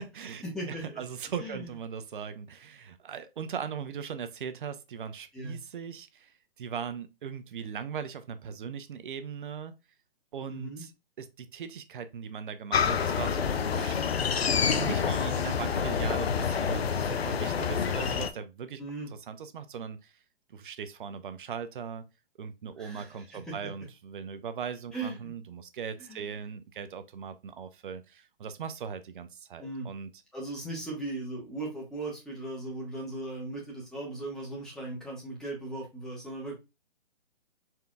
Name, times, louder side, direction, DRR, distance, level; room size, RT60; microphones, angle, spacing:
voice 1, 0.0-9.7 10.3-10.9 11.2-18.8 19.3-20.1 20.5-22.0 22.4-30.1, right 7 dB, 55° right, 0.7 m, -39 dB
voice 2, 0.5-1.0 1.4-1.7 5.3-5.6 10.5-10.8 18.8-19.1 22.8-23.6 24.9-25.3 26.0-26.4 29.6-29.9 30.3-36.6, right 2 dB, ahead, 1.4 m, -38 dB
sound 1, 12.7-18.3, left 6 dB, 85° left, 0.6 m, -27 dB
4.3 x 3.4 x 2.4 m
hypercardioid pair, 145°, 30 cm